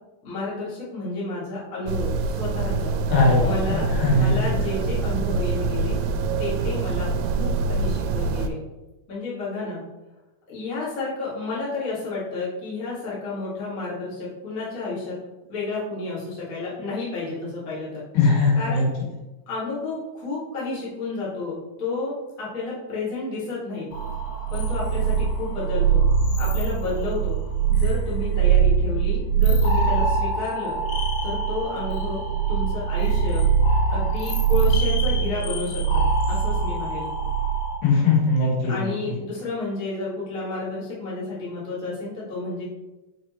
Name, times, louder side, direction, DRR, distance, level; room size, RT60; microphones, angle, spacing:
voice 1, 0.2-2.9 3.4-6.0 6.4-8.6 9.1-9.8 10.5-15.2 15.5-18.0 18.5-18.9 19.5-21.5 21.8-23.9 24.5-26.1 26.4-27.3 27.7-30.7 31.2-32.2 32.5-33.4 33.9-35.8 36.3-37.1 38.7-42.6, left 3 dB, 45° left, -8 dB, 1.0 m, -31 dB
sound 1, 1.9-8.5, right 4 dB, 85° right, 2.4 m, -25 dB
voice 2, 3.1-4.3 18.2-18.8 37.8-38.9, left 3 dB, 70° left, -5 dB, 3.8 m, -20 dB
sound 2, 23.9-37.8, right 6 dB, 90° left, 3.5 m, -22 dB
6.2 x 5.2 x 3.1 m, 1.1 s
omnidirectional pair, 4.9 m